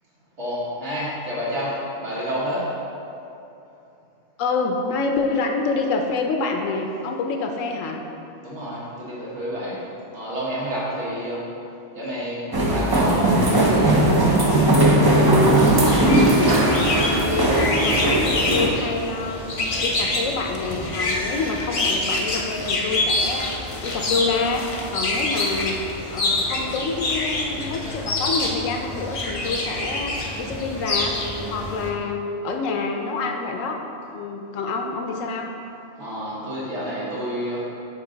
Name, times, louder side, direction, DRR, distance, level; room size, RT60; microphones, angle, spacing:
voice 1, 0.4-2.7 8.4-9.8 10.1-11.4 11.9-14.6 36.0-37.6, equal, 60° right, -8 dB, 1.8 m, -29 dB
voice 2, 4.4-8.0 16.9-25.8 26.1-31.2 31.5-33.8 34.1-35.5, left 4 dB, 90° left, 3 dB, 1.0 m, -27 dB
sound 1, 12.5-18.7, right 1 dB, 35° right, 0.4 m, -18 dB
sound 2, 15.5-31.9, left 2 dB, 40° left, 0.5 m, -26 dB
7.3 x 3.6 x 3.9 m, 2.7 s
omnidirectional pair, 1.3 m